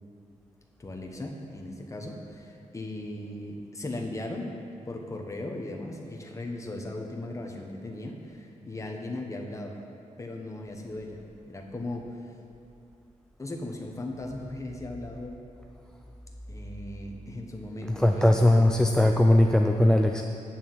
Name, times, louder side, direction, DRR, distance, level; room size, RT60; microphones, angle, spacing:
voice 1, 0.8-4.5 4.9-9.8 10.2-11.2 11.5-12.1 13.4-15.4 16.5-18.7, left 1 dB, 25° left, 1 dB, 1.2 m, -37 dB
voice 2, 17.9-20.2, left 1 dB, 5° left, 4 dB, 0.4 m, -20 dB
9.0 x 6.9 x 7.8 m, 2.6 s
wide cardioid pair, 125°, 13 cm